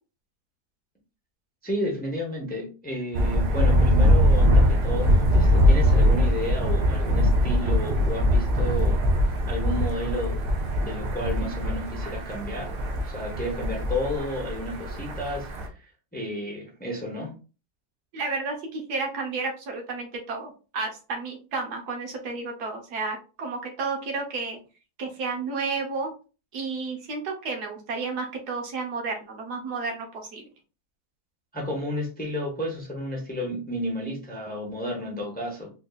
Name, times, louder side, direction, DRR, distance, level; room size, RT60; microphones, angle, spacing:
voice 1, 1.6-9.0 9.5-10.4 10.7-12.8 13.0-15.5 16.1-17.3 31.5-35.7, equal, 10° left, -1 dB, 0.7 m, -31 dB
Thunder, 3.1-15.7, equal, 65° right, 1.1 m, -22 dB
voice 2, 18.1-24.6 25.0-26.1 26.5-30.5, right 4 dB, 85° right, 2 dB, 1.5 m, -32 dB
4.3 x 2.6 x 2.4 m, 0.34 s
omnidirectional pair, 1.7 m